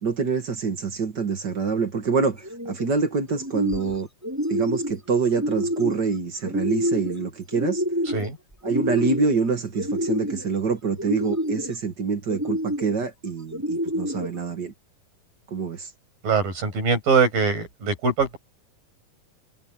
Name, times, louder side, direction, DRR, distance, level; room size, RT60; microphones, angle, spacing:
voice 1, 0.0-4.1 4.5-7.8 8.6-14.7 15.5-15.9, right 4 dB, 45° right, 1.5 m, -26 dB
sound 1, 2.4-2.9 3.3-3.9 4.2-5.0 5.3-6.0 6.4-7.2 7.5-8.3 8.6-9.4 9.8-10.5 11.0-11.7 12.3-12.9 13.5-14.3, equal, 5° right, 6.3 m, -28 dB
voice 2, 8.1-8.4 16.2-18.4, right 5 dB, 70° right, 9.1 m, -22 dB
omnidirectional pair, 4.2 m